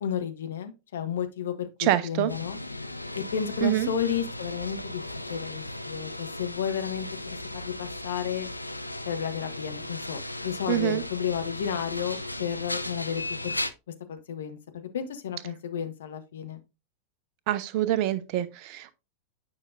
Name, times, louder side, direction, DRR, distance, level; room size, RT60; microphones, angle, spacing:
voice 1, 0.0-2.6 3.1-5.0 5.3-8.5 9.1-13.5 14.1-14.6 14.9-16.6, left 8 dB, 60° left, 1.0 m, -32 dB
voice 2, 1.8-2.3 3.6-3.9 10.7-11.0 17.5-18.9, right 12 dB, 45° right, 0.7 m, -26 dB
sound 1, 2.3-13.7, left 1 dB, 85° left, 0.4 m, -36 dB
8.9 x 5.7 x 2.5 m
figure-of-eight pair, 90°, 0 cm